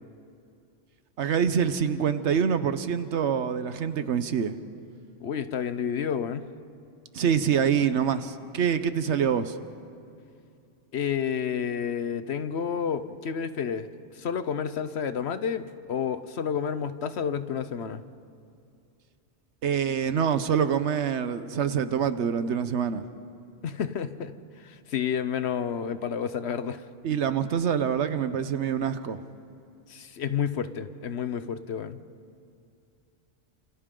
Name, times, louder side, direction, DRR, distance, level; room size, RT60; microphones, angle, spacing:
voice 1, 1.2-4.5 7.1-9.6 19.6-23.0 27.0-29.2, right 7 dB, 65° right, 11 dB, 1.1 m, -25 dB
voice 2, 5.2-6.4 10.9-13.9 14.1-18.0 23.6-26.9 29.9-32.0, left 7 dB, 60° left, 11 dB, 1.0 m, -30 dB
29.5 x 27.5 x 3.8 m, 2.5 s
omnidirectional pair, 1.3 m